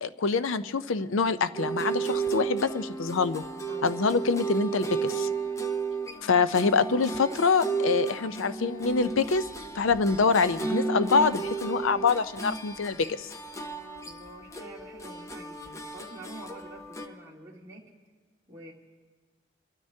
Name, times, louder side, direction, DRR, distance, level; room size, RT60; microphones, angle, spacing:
voice 1, 0.0-3.4 3.8-5.3 6.2-9.4 9.7-13.3, left 4 dB, 75° left, 13 dB, 0.5 m, -25 dB
sound 1, 1.6-17.1, right 4 dB, 15° left, 0.5 m, -33 dB
voice 2, 3.7-4.0 6.1-6.6 14.0-17.9 18.5-18.7, right 2 dB, 15° right, -5 dB, 1.8 m, -47 dB
26.5 x 13.0 x 2.8 m, 1.4 s
head